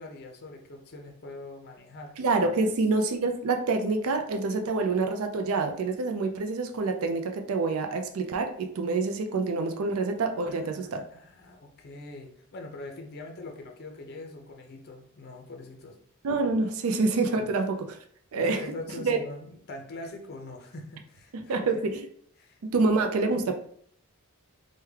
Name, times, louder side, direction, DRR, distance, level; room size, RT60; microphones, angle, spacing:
voice 1, 0.0-2.1 2.6-2.7 10.4-16.0 17.4-17.5 18.4-21.8 22.4-23.0, left 2 dB, 45° left, 2 dB, 0.5 m, -43 dB
voice 2, 2.2-11.0 16.2-18.0 18.3-18.7 19.0-19.2 21.3-22.1 22.6-23.5, right 3 dB, 70° right, 5 dB, 0.4 m, -27 dB
3.4 x 2.2 x 3.2 m, 0.64 s
head